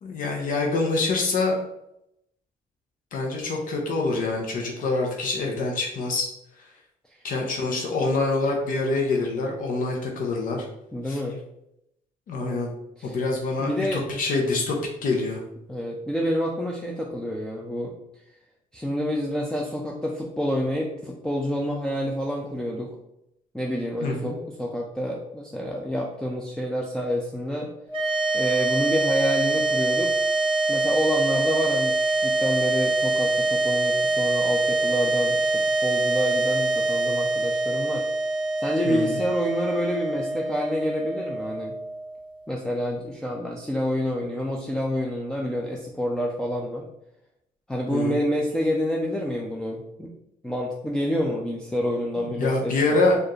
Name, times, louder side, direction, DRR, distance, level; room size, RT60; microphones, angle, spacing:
voice 1, 0.0-1.6 3.1-6.3 7.2-10.7 11.0-11.2 12.3-12.7 13.0-15.4 24.0-24.4 38.8-39.2 47.9-48.2 52.4-53.2, left 3 dB, 60° left, 0 dB, 0.8 m, -25 dB
voice 2, 10.9-11.4 13.0-13.2 13.6-14.0 15.7-17.9 18.7-22.9 23.5-27.7 28.3-30.1 30.7-32.0 32.2-38.0 38.6-41.8 42.5-46.8 47.7-50.1 50.4-53.2, equal, 5° left, -2 dB, 0.5 m, -28 dB
sound 1, 27.9-42.3, right 2 dB, 30° right, 0.7 m, -24 dB
4.4 x 2.5 x 3.1 m, 0.82 s
cardioid pair, 115°, 16 cm